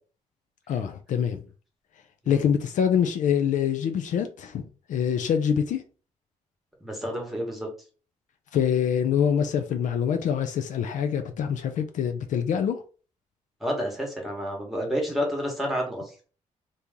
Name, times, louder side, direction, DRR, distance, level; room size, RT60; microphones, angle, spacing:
voice 1, 0.7-1.4 2.3-4.6 4.9-5.8 8.5-12.8, left 8 dB, 70° left, 0.5 m, -25 dB
voice 2, 6.8-7.7 13.6-16.0, equal, ahead, 1.3 m, -29 dB
2.9 x 2.6 x 3.6 m
cardioid pair, 110°, 13 cm